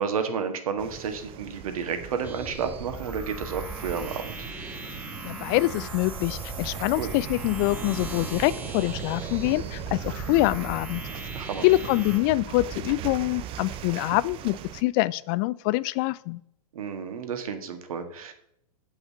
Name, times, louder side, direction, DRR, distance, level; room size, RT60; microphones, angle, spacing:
voice 1, 0.0-4.5 6.7-7.1 11.3-11.6 16.7-18.3, right 6 dB, 65° right, 7 dB, 1.7 m, -31 dB
sound 1, 0.8-14.8, right 10 dB, 30° right, 0.7 m, -39 dB
sound 2, 2.2-12.2, right 2 dB, 10° right, 1.6 m, -38 dB
voice 2, 5.2-11.0 11.6-16.4, left 19 dB, 35° left, 20 dB, 0.4 m, -25 dB
8.1 x 5.6 x 7.6 m, 0.74 s
hypercardioid pair, 110°, 19 cm